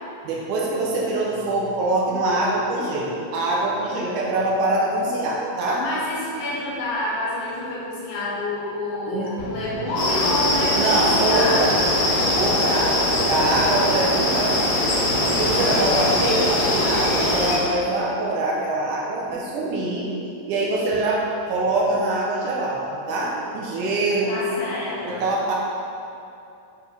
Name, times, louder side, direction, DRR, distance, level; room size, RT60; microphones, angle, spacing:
voice 1, 0.2-5.8 9.1-9.3 10.7-11.8 12.4-14.8 15.3-20.1 20.5-24.3 25.0-25.5, right 2 dB, 75° right, -3 dB, 1.8 m, -24 dB
voice 2, 5.8-11.8 24.3-25.3, left 1 dB, 90° left, -8 dB, 3.6 m, -28 dB
sound 1, 9.4-16.9, equal, 45° right, 1.9 m, -34 dB
sound 2, 10.0-17.6, left 1 dB, 70° left, 3.0 m, -21 dB
8.8 x 4.4 x 3.5 m, 2.7 s
omnidirectional pair, 4.5 m